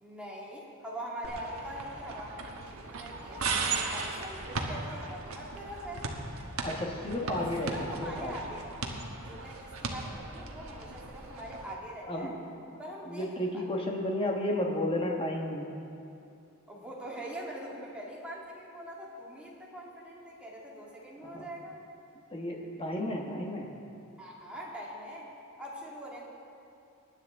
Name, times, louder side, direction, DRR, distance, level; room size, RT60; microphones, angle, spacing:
voice 1, 0.0-3.5 3.8-6.0 7.2-9.0 9.3-12.3 12.8-13.6 16.7-21.7 24.2-25.3 25.6-26.3, equal, 5° right, -5 dB, 2.1 m, -43 dB
sound 1, 1.2-11.7, right 3 dB, 70° right, 1.2 m, -37 dB
voice 2, 6.6-8.4 12.1-12.4 12.7-12.8 13.0-15.7 21.2-21.5 22.3-23.7, left 1 dB, 25° left, 0 dB, 1.4 m, -33 dB
19.5 x 10.0 x 3.6 m, 2.7 s
head